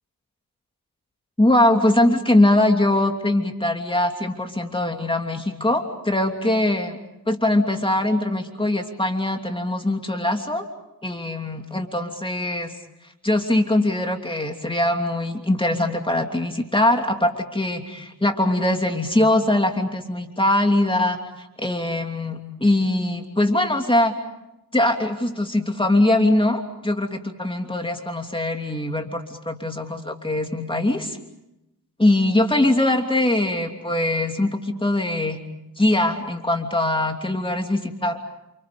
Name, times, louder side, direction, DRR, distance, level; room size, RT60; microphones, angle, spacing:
voice 1, 1.4-7.0 7.3-10.7 11.0-12.7 13.2-24.1 24.7-31.2 32.0-35.4 35.8-38.2, left 1 dB, 15° left, 3 dB, 3.0 m, -22 dB
29.5 x 28.5 x 5.3 m, 0.90 s
cardioid pair, 80°, 37 cm